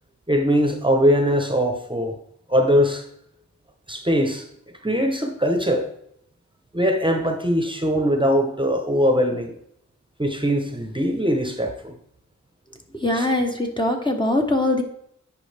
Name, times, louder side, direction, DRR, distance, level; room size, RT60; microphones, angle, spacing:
voice 1, 0.3-2.2 2.5-3.0 3.9-4.4 4.8-5.9 6.7-9.6 10.2-11.9 13.1-13.3, equal, 15° right, 5 dB, 0.9 m, -21 dB
voice 2, 12.9-14.8, left 1 dB, 15° left, 2 dB, 0.9 m, -22 dB
9.4 x 5.0 x 3.4 m, 0.73 s
wide cardioid pair, 85°, 29 cm